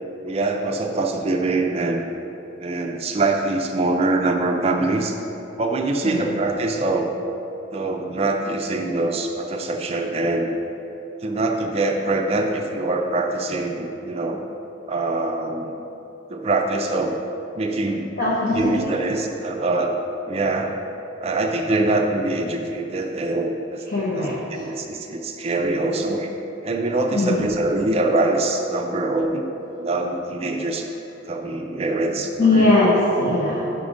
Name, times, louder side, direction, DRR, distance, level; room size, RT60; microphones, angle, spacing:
voice 1, 0.2-2.0 2.6-5.1 5.6-7.1 7.7-10.5 11.2-14.4 14.9-15.8 16.3-17.2 17.6-18.1 18.5-20.0 20.3-20.8 21.2-26.3 26.6-29.5 29.8-30.9 31.3-32.7, right 2 dB, 30° right, 3 dB, 0.3 m, -24 dB
voice 2, 18.2-19.0 23.9-24.7 27.1-27.5 32.4-33.7, left 2 dB, 45° left, -8 dB, 1.0 m, -20 dB
5.1 x 5.0 x 5.0 m, 2.9 s
head